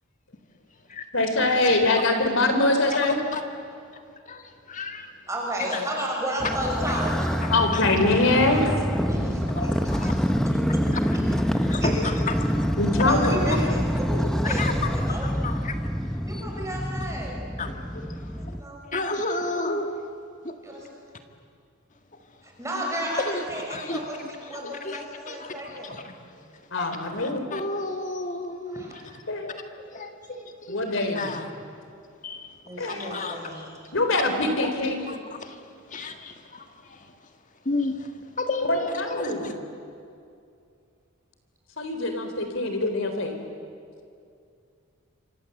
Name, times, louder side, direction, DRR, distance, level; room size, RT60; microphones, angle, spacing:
voice 1, 1.1-3.2 7.5-8.7 12.8-13.6 26.7-27.5 29.3-29.6 30.7-31.3 32.8-33.2 33.9-35.1 38.7-39.5 41.8-43.4, left 2 dB, 65° left, 6 dB, 3.9 m, -23 dB
voice 2, 4.3-5.1 5.7-5.8 6.9-7.0 7.4-8.0 9.6-10.1 11.1-11.2 11.6-12.8 13.2-13.4 14.4-16.3 17.6-18.6 18.9-20.0 20.4-20.6 23.2-26.4 26.7-29.1 29.9-31.5 32.2-32.5 32.9-33.7 34.6-34.7 35.1-35.6 35.9-37.1 37.7-39.5, left 3 dB, 40° left, 6 dB, 1.8 m, -33 dB
voice 3, 5.3-7.3 9.1-10.2 10.5-10.9 11.8-11.9 13.0-15.4 16.2-17.4 18.3-18.9 20.6-21.0 22.4-26.0 28.7-29.0 32.6-33.7, equal, 15° right, -1 dB, 5.8 m, -33 dB
Motorcycle, 6.4-18.6, equal, ahead, 1.0 m, -26 dB
27.5 x 26.0 x 8.0 m, 2.4 s
head